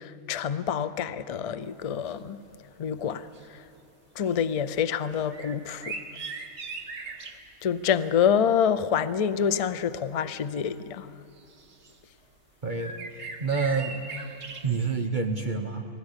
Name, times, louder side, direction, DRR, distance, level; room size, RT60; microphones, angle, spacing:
voice 1, 0.0-2.4 2.8-3.6 4.2-6.0 7.6-11.1, left 8 dB, 50° left, 0.4 m, -27 dB
sound 1, 2.1-2.2 2.5-2.7 3.1-3.8 4.2-4.4 5.1-7.5 9.6-9.7 10.7-10.8 11.4-12.0 12.8-14.9, right 4 dB, 55° right, 1.6 m, -40 dB
voice 2, 12.6-13.0 13.4-14.0 14.6-15.9, right 4 dB, 40° right, 1.1 m, -27 dB
19.5 x 17.0 x 9.8 m
omnidirectional pair, 1.4 m